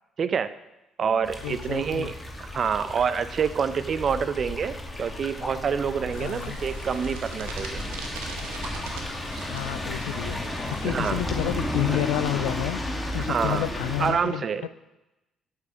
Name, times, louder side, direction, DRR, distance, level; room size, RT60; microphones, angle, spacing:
voice 1, 0.2-0.5 1.0-2.1 2.5-7.8 10.8-11.2 13.3-13.7 14.0-14.7, right 6 dB, 50° right, 14 dB, 0.6 m, -27 dB
sound 1, 1.2-14.1, left 1 dB, 15° left, 2.0 m, -33 dB
voice 2, 1.4-2.1 6.2-6.6 9.5-12.8 13.1-14.7, left 16 dB, 80° left, 15 dB, 0.3 m, -30 dB
sound 2, 6.1-12.3, right 5 dB, 75° right, 1.2 m, -42 dB
8.3 x 8.3 x 4.9 m, 0.96 s
hypercardioid pair, 50°, 0 cm